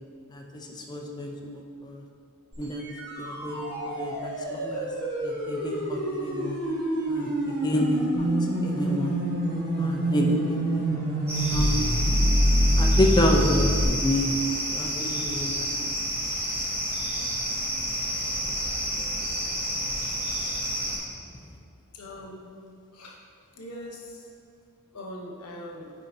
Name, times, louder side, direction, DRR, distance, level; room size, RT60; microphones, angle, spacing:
voice 1, 0.3-2.0 2.6-2.8 3.2-3.6 3.8-4.9 5.2-6.6 7.1-8.3 8.6-9.2 9.8-10.8 11.5-11.9 12.7-14.3 14.7-15.7, left 1 dB, 20° left, 1 dB, 0.5 m, -28 dB
sound 1, 2.5-13.9, equal, 50° right, 1.3 m, -26 dB
sound 2, 11.3-21.0, equal, 10° right, 1.1 m, -30 dB
voice 2, 21.9-22.5 22.9-23.2 23.5-24.3 24.9-25.9, left 1 dB, 90° left, -1 dB, 1.0 m, -41 dB
9.5 x 4.1 x 2.7 m, 2.2 s
head